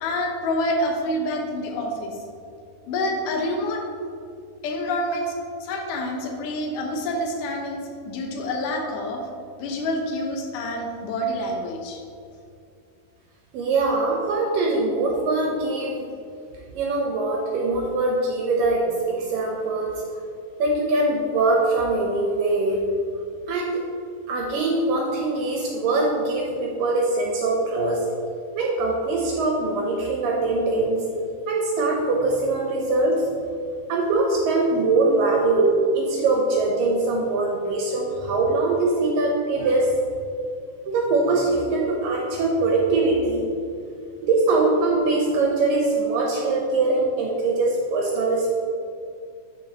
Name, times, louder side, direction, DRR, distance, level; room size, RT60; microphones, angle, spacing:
voice 1, 0.0-2.2 2.9-3.8 4.6-5.3 5.6-9.2 9.6-12.0, left 1 dB, 75° left, 1 dB, 2.0 m, -27 dB
voice 2, 13.5-16.1 16.7-20.0 20.6-22.8 23.5-23.8 24.3-28.1 28.6-31.1 31.5-33.3 33.9-39.9 40.9-43.4 44.2-48.5, right 3 dB, 75° right, -1 dB, 2.1 m, -22 dB
11.5 x 4.6 x 2.9 m, 2.4 s
omnidirectional pair, 4.6 m